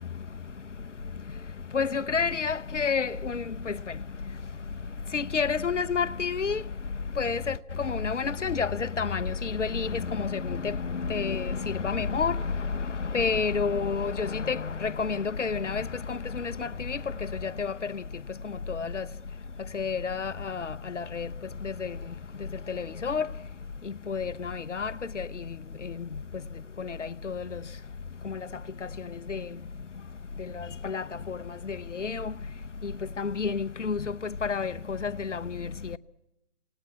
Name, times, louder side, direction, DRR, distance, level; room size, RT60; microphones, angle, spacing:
voice 1, 1.7-3.8 5.1-6.6 7.2-17.0 17.4-18.0 18.4-19.1 19.7-21.3 21.6-22.0 22.7-23.3 24.1-25.4 25.8-26.1 26.8-27.6 28.2-28.4 29.1-29.5 30.5-31.4 31.6-32.3 32.8-32.9 33.2-34.2 34.4-36.0, left 5 dB, 85° left, 1.0 m, -30 dB
27.0 x 18.5 x 9.5 m
figure-of-eight pair, 140°, 36 cm